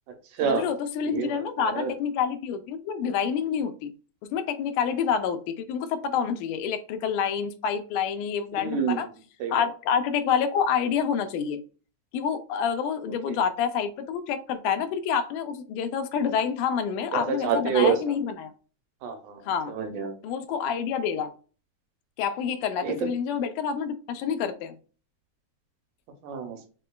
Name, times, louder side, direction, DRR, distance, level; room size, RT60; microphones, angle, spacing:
voice 1, 0.4-3.9 4.2-9.1 9.5-11.6 12.1-18.5 19.5-19.7 20.2-21.3 22.2-24.8, left 7 dB, 90° left, 2.1 m, -28 dB
voice 2, 1.6-1.9 8.5-9.0 9.4-9.6 13.3-13.4 17.1-18.0 19.0-19.4 19.7-20.2 22.8-23.0 26.2-26.6, right 6 dB, 80° right, 2.0 m, -27 dB
5.3 x 2.1 x 2.2 m
omnidirectional pair, 3.6 m